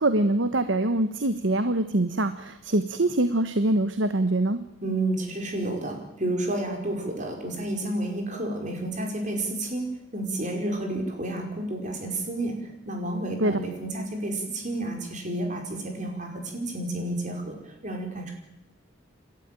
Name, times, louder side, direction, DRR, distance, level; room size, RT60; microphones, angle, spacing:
voice 1, 0.0-4.6 13.4-13.6, right 1 dB, 65° right, 10 dB, 1.2 m, -24 dB
voice 2, 4.8-18.2, right 1 dB, 40° right, 3 dB, 5.2 m, -31 dB
28.0 x 13.0 x 9.2 m, 0.87 s
head